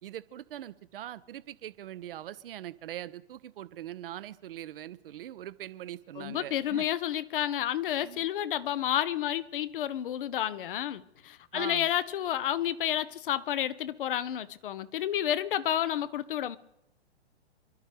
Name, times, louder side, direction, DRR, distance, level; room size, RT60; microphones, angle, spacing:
voice 1, 0.0-6.9 8.0-8.3 11.5-11.9, right 12 dB, 55° right, 0.8 m, -42 dB
voice 2, 6.2-16.6, left 11 dB, 50° left, 0.9 m, -30 dB
27.0 x 12.0 x 3.4 m
figure-of-eight pair, 120°, 34 cm